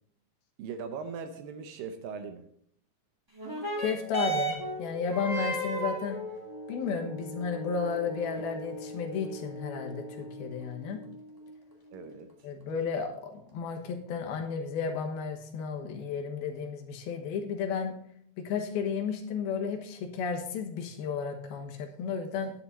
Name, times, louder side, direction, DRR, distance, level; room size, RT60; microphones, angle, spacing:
voice 1, 0.6-2.4 11.9-12.5, right 5 dB, 75° right, 8 dB, 2.3 m, -40 dB
sound 1, 3.3-12.3 13.1-13.2, right 3 dB, 10° right, 1.2 m, -37 dB
voice 2, 3.8-6.2 6.7-11.0 12.4-17.9 18.4-22.5, left 6 dB, 75° left, 3 dB, 3.1 m, -33 dB
Wind instrument woodwind instrument, 4.0-10.4, left 1 dB, 40° right, 1.4 m, -47 dB
10.5 x 10.0 x 4.2 m, 0.66 s
omnidirectional pair, 4.5 m